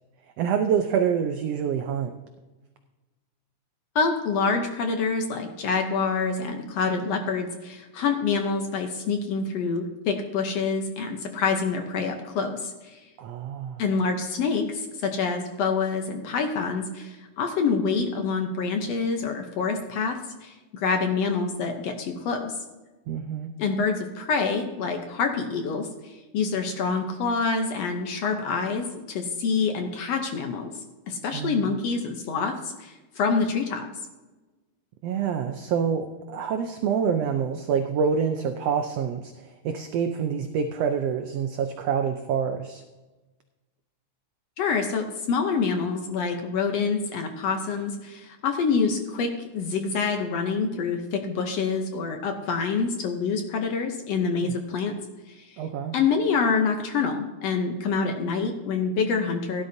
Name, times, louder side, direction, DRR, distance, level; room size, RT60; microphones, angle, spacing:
voice 1, 0.4-2.1 13.2-13.8 23.1-23.5 31.3-31.7 35.0-42.8 54.4-54.5 55.6-56.0, right 7 dB, 90° right, 7 dB, 1.4 m, -27 dB
voice 2, 3.9-13.0 13.8-22.5 23.6-30.7 31.1-33.9 44.6-54.9 55.3-55.6 55.9-59.6, left 5 dB, 70° left, 5 dB, 1.7 m, -26 dB
16.5 x 11.0 x 2.7 m, 1.2 s
omnidirectional pair, 3.6 m